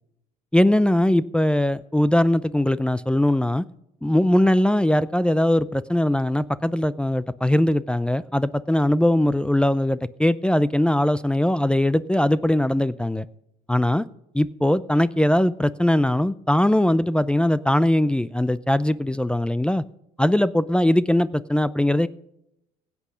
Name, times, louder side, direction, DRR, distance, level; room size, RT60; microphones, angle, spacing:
voice 1, 0.5-3.6 4.0-13.3 13.7-14.0 14.3-19.8 20.2-22.1, left 1 dB, 5° left, 14 dB, 0.5 m, -20 dB
16.5 x 8.5 x 5.0 m, 0.82 s
supercardioid pair, 80°, 18 cm